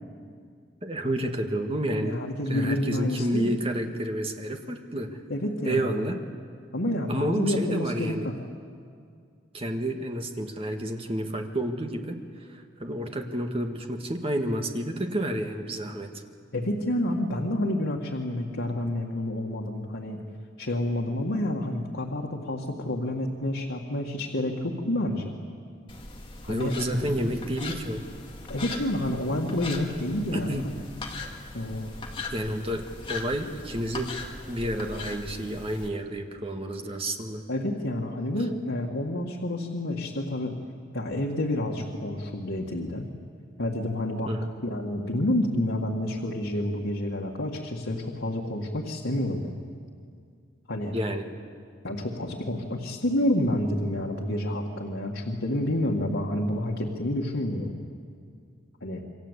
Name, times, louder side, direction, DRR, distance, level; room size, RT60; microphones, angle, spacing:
voice 1, 0.8-2.2 2.5-5.2 5.6-6.2 7.1-8.3 9.5-12.2 12.5-16.1 26.5-28.0 30.3-30.7 32.3-34.1 34.5-37.4 44.3-44.5 50.9-51.3, right 1 dB, 30° right, 4 dB, 1.8 m, -30 dB
voice 2, 2.0-3.5 5.3-6.1 6.7-8.3 16.5-20.2 20.6-25.4 26.4-26.7 28.5-30.5 31.5-31.9 37.5-40.5 40.9-43.1 43.6-44.3 44.7-49.5 50.7-50.9 51.8-57.7 58.8-59.0, left 1 dB, 85° left, -2 dB, 2.0 m, -29 dB
sound 1, 25.9-35.9, left 3 dB, 25° left, 2.3 m, -39 dB
Drum, 26.9-30.9, equal, 60° right, 7.3 m, -42 dB
28.0 x 23.5 x 8.4 m, 2.2 s
head